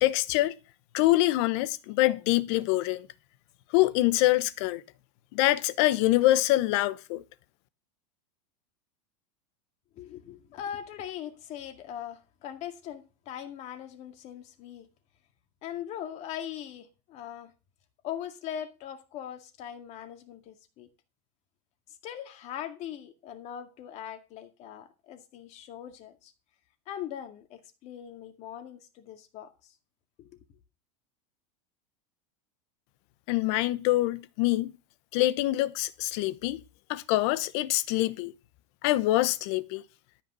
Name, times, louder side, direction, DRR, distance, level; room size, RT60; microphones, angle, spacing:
voice 1, 0.0-0.5 0.9-3.1 3.7-4.8 5.3-7.2 33.3-34.7 35.1-36.6 36.9-38.3 38.8-39.8, left 17 dB, 55° left, 1.0 m, -25 dB
voice 2, 10.0-14.9 15.6-17.5 18.0-20.9 22.0-26.3 26.9-29.7 30.2-30.4, left 10 dB, 40° left, 2.1 m, -40 dB
13.0 x 6.2 x 5.5 m
supercardioid pair, 140°, 17 cm